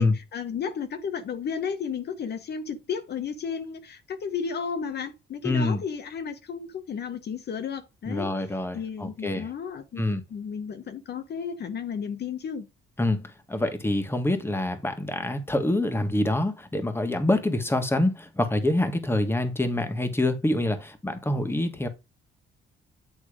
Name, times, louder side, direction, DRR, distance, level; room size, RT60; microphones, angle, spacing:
voice 1, 0.0-8.3 8.7-12.7, left 6 dB, 55° left, 1.0 m, -33 dB
voice 2, 5.4-5.8 8.1-9.5 10.0-10.2 13.0-21.9, left 1 dB, 10° left, 1.6 m, -26 dB
8.8 x 3.4 x 4.9 m
cardioid pair, 90°, 20 cm